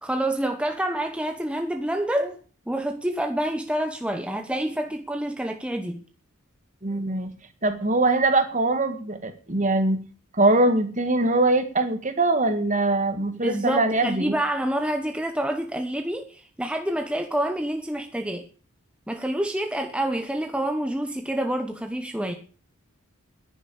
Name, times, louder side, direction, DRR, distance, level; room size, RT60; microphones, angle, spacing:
voice 1, 0.0-2.4 2.7-6.0 13.4-18.5 19.1-22.3, right 1 dB, 5° right, 1.0 m, -27 dB
voice 2, 6.8-7.3 7.6-10.0 10.3-14.3, right 2 dB, 35° right, 1.9 m, -22 dB
10.5 x 10.0 x 8.7 m
head